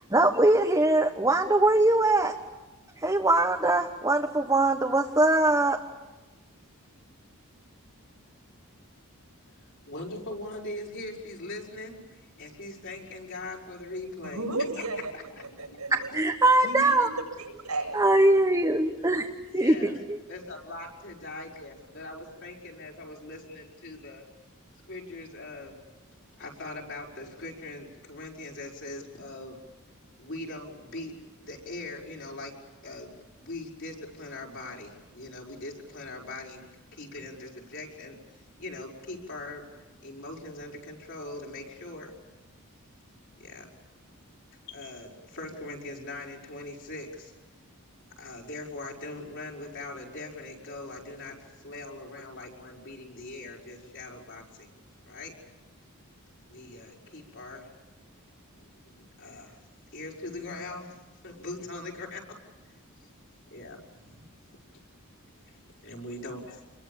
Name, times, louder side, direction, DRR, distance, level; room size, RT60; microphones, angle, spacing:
voice 1, 0.1-2.3 3.0-5.8 16.1-17.1 17.9-19.3 19.5-20.2, right 2 dB, 15° right, 2 dB, 1.3 m, -22 dB
voice 2, 9.9-14.5 14.8-14.9 15.1-15.2 19.5-20.0 20.3-24.2 24.9-25.8 26.4-29.6 30.2-32.6 32.8-33.1 33.4-36.6 36.9-38.2 38.6-39.7 40.0-42.1 43.4-43.7 44.7-47.3 48.2-54.7 55.1-55.3 56.5-57.7 58.6-58.7 59.2-59.6 59.9-61.0 61.2-62.4 63.5-64.2 65.5-65.6 65.8-66.6, left 2 dB, 60° left, -2 dB, 5.8 m, -41 dB
voice 3, 14.2-15.1 15.4-16.1 16.6-17.1 17.4-18.1, right 2 dB, 85° right, 3 dB, 7.5 m, -34 dB
28.0 x 22.5 x 7.2 m, 1.1 s
head